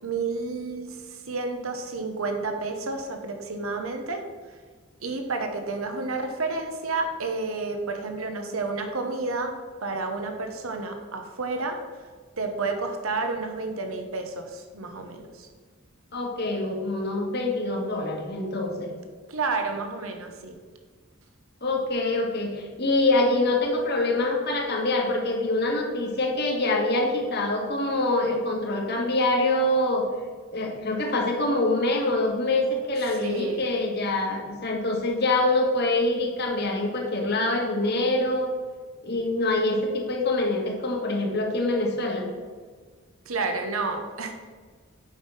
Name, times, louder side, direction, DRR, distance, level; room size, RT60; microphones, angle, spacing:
voice 1, 0.0-4.5 5.0-11.8 12.4-15.5 19.3-20.5 33.2-33.7 43.2-44.3, right 3 dB, 75° right, 5 dB, 1.0 m, -30 dB
voice 2, 16.1-18.9 21.6-30.0 30.5-38.5 39.0-42.3, left 2 dB, 50° left, 1 dB, 1.6 m, -25 dB
8.6 x 5.6 x 5.6 m, 1.5 s
head